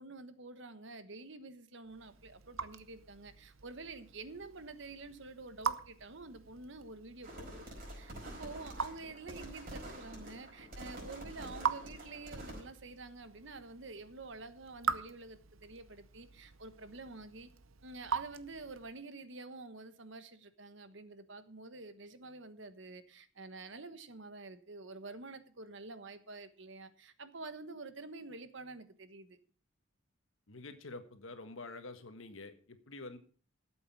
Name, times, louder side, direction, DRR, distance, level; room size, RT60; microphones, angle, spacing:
voice 1, 0.0-7.7 7.9-17.5 17.8-29.4, right 3 dB, 65° right, 1.2 m, -48 dB
Raindrop / Drip, 1.8-19.0, right 6 dB, 85° right, 0.8 m, -43 dB
sound 1, 7.2-12.6, right 1 dB, 45° right, 4.8 m, -47 dB
voice 2, 30.5-33.2, left 3 dB, 75° left, 1.6 m, -47 dB
13.0 x 7.8 x 6.0 m
head